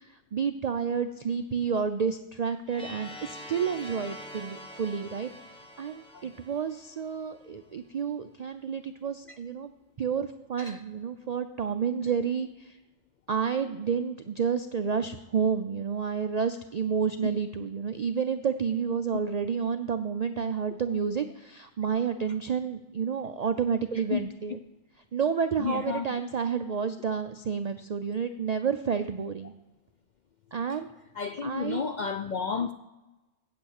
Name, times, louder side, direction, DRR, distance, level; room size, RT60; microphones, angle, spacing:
voice 1, 0.0-9.7 10.0-12.8 13.3-24.6 25.1-29.5 30.5-30.9 31.4-31.8, right 6 dB, 65° right, 9 dB, 0.4 m, -30 dB
sound 1, 2.7-7.5, left 1 dB, 5° left, 1.1 m, -45 dB
voice 2, 25.6-26.1 31.1-32.7, left 6 dB, 65° left, 8 dB, 0.4 m, -31 dB
8.6 x 8.3 x 6.5 m, 1.0 s
omnidirectional pair, 1.2 m